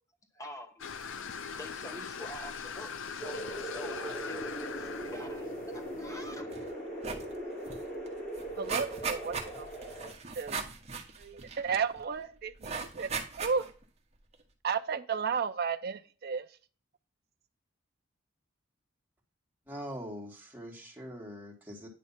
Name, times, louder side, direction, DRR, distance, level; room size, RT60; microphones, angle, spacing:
voice 1, 0.3-0.9 1.5-6.5, left 1 dB, 15° left, 1.2 m, -47 dB
sound 1, 0.8-6.4, left 6 dB, 70° left, 0.6 m, -41 dB
sound 2, 3.2-10.1, right 1 dB, 45° left, 2.0 m, -40 dB
sound 3, 6.5-6.7 7.0-7.3 7.7-7.8 8.1-12.0 12.6-13.8 14.3-14.4, right 5 dB, 35° right, 1.1 m, -38 dB
voice 2, 8.6-9.9 10.4-10.6 11.2-13.7 14.6-16.5, right 6 dB, 55° right, 0.5 m, -33 dB
voice 3, 19.7-21.9, equal, 10° right, 1.9 m, -43 dB
9.5 x 3.2 x 5.7 m
head